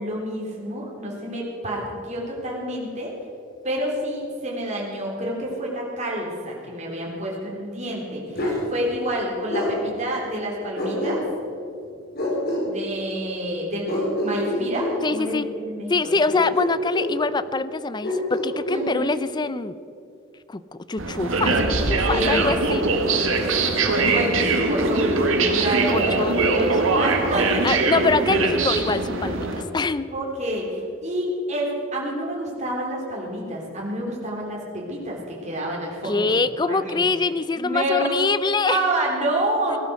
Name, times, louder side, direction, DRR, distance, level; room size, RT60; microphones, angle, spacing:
voice 1, 0.0-3.1 3.6-11.2 12.6-16.1 18.7-19.1 22.0-22.7 23.9-24.4 24.7-26.3 26.9-28.5 30.1-36.3 36.7-37.0 37.5-38.2 38.7-39.8, right 1 dB, 35° right, -3 dB, 3.7 m, -28 dB
Bark, 8.3-8.6 9.5-9.7 10.8-11.5 12.1-12.7 13.9-15.0 16.3-17.2 18.0-18.9, left 1 dB, 50° left, 3.8 m, -26 dB
voice 2, 15.0-15.5 15.9-19.8 20.5-22.8 25.9-26.8 27.6-30.1 36.0-38.8, left 3 dB, 20° left, 15 dB, 0.5 m, -24 dB
sound 1, 21.0-29.6, right 3 dB, 85° right, 1.7 m, -22 dB
18.0 x 12.0 x 6.4 m, 2.5 s
head